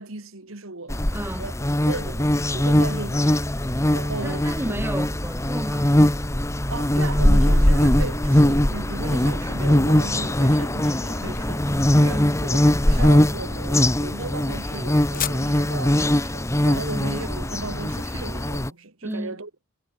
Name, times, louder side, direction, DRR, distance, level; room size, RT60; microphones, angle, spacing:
voice 1, 0.0-1.0 1.4-1.5 1.9-3.5 3.9-4.9 6.7-11.7 12.0-19.5, right 3 dB, 75° right, 2.1 m, -35 dB
sound 1, 0.9-18.7, left 1 dB, 15° left, 1.2 m, -21 dB
voice 2, 1.1-1.5 4.2-6.0 12.1-12.5 16.9-17.1 19.0-19.4, right 1 dB, 10° right, 1.4 m, -32 dB
sound 2, 12.8-18.7, left 11 dB, 40° left, 4.0 m, -40 dB
head